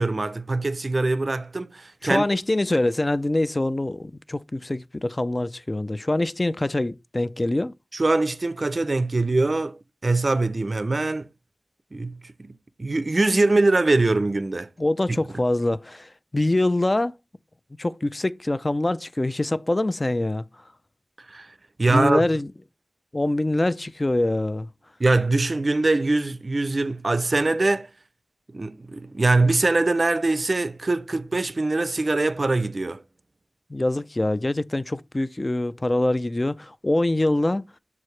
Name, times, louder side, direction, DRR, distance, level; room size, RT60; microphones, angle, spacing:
voice 1, 0.0-2.2 7.9-11.3 11.9-14.7 15.1-15.5 21.3-22.3 25.0-27.9 28.5-33.0, right 2 dB, 45° right, 0.5 m, -23 dB
voice 2, 2.0-7.7 14.8-17.1 17.8-20.5 21.9-22.5 23.1-24.7 33.7-37.6, left 1 dB, 30° left, 0.4 m, -24 dB
7.2 x 4.6 x 3.2 m
wide cardioid pair, 90°, 0 cm